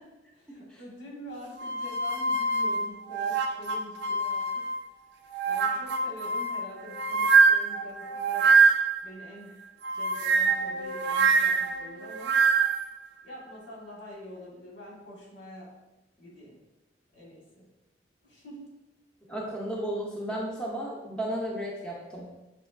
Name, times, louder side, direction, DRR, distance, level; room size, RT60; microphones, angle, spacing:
voice 1, 0.3-4.7 5.1-8.5 9.0-9.6 9.9-12.4 13.2-15.8 16.2-16.6 17.1-17.7 18.2-18.7, equal, 90° left, -4 dB, 1.5 m, -46 dB
sound 1, 1.6-4.9 5.3-9.0 9.8-12.9, right 4 dB, 70° right, 0.3 m, -24 dB
voice 2, 19.3-22.3, right 1 dB, 5° left, -4 dB, 0.5 m, -33 dB
5.2 x 2.9 x 2.4 m, 1.0 s
head